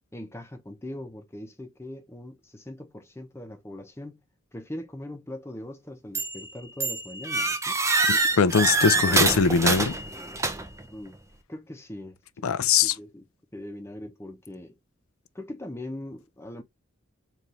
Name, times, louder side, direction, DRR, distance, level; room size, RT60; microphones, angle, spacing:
voice 1, 0.1-4.2 4.5-7.8 10.9-11.2 11.5-13.2 13.5-14.8 15.3-16.6, left 1 dB, 10° left, 0.8 m, -41 dB
sound 1, 6.2-6.5 6.8-10.8, right 3 dB, 15° right, 0.4 m, -25 dB
voice 2, 8.1-10.0 12.4-12.9, left 6 dB, 85° left, 0.5 m, -22 dB
4.2 x 2.6 x 3.1 m
head